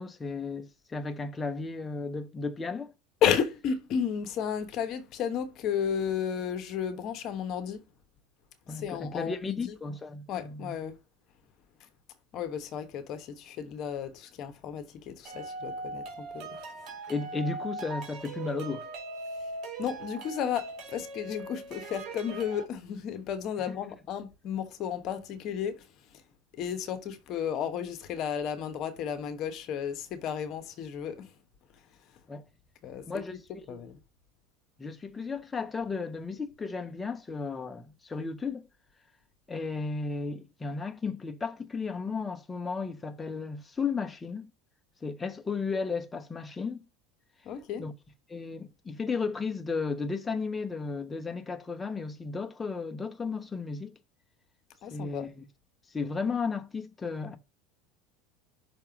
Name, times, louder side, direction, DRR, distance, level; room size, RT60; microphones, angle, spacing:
voice 1, 0.0-2.9 8.7-10.7 17.1-18.9 23.7-23.8 32.3-32.4 33.1-33.3 33.7-33.9 34.8-38.7 39.5-44.5 45.0-46.8 47.8-47.9 48.3-53.9 54.9-55.4 55.9-57.4, left 4 dB, 15° left, 0.9 m, -34 dB
voice 2, 3.2-7.8 8.7-9.7 10.3-11.0 12.3-16.6 19.4-19.5 19.8-26.2 26.5-31.3 32.8-33.2 33.7-34.0 47.4-47.9 54.8-55.3, left 8 dB, 50° left, 1.2 m, -33 dB
sound 1, 15.2-22.6, right 2 dB, 50° right, 2.5 m, -40 dB
5.9 x 3.5 x 5.8 m
supercardioid pair, 110°, 0 cm